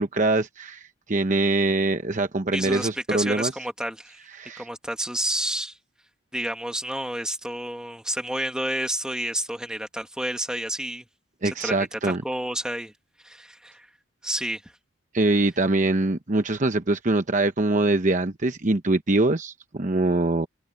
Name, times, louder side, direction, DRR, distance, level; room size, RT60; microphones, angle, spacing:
voice 1, 0.0-3.5 4.4-4.7 11.4-12.2 15.1-20.5, right 2 dB, 40° right, 0.9 m, -23 dB
voice 2, 2.5-4.3 4.6-5.8 6.3-11.1 11.6-12.9 13.2-13.9 14.2-14.7, right 1 dB, 5° right, 2.0 m, -30 dB
head